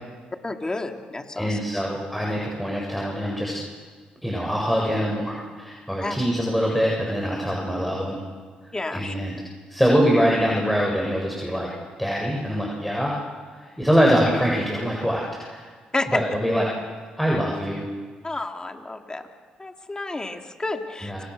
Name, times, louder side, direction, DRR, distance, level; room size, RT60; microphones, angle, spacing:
voice 1, 0.4-1.6 6.0-6.2 8.7-9.1 15.9-16.2 18.2-19.2 19.6-21.1, left 2 dB, 25° left, 4 dB, 3.1 m, -30 dB
voice 2, 1.4-3.6 4.2-8.2 8.9-9.3 9.7-11.7 12.0-13.2 13.5-15.7 16.1-16.6 17.2-17.8 21.0-21.2, equal, ahead, -2 dB, 7.7 m, -23 dB
30.0 x 26.0 x 6.7 m, 1.5 s
supercardioid pair, 55°, 3 cm